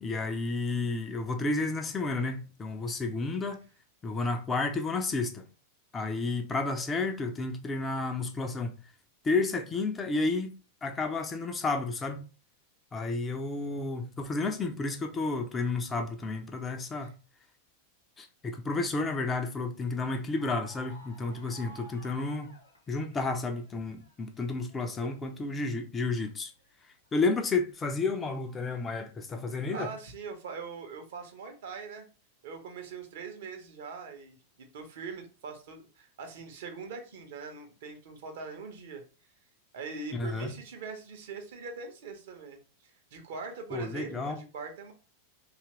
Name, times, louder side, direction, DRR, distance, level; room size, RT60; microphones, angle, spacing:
voice 1, 0.0-3.6 4.0-5.5 5.9-8.7 9.2-10.5 10.8-12.2 12.9-17.1 18.2-22.5 22.9-26.5 27.1-29.9 40.1-40.5 43.7-44.4, left 3 dB, 20° left, 0.4 m, -31 dB
sound 1, 20.1-23.7 24.0-25.8 26.2-27.1 27.8-28.1, right 1 dB, 80° left, 0.8 m, -54 dB
voice 2, 29.7-32.1 32.4-39.0 39.7-44.9, right 5 dB, 55° right, 0.7 m, -42 dB
2.8 x 2.4 x 2.9 m
figure-of-eight pair, 90°, 0 cm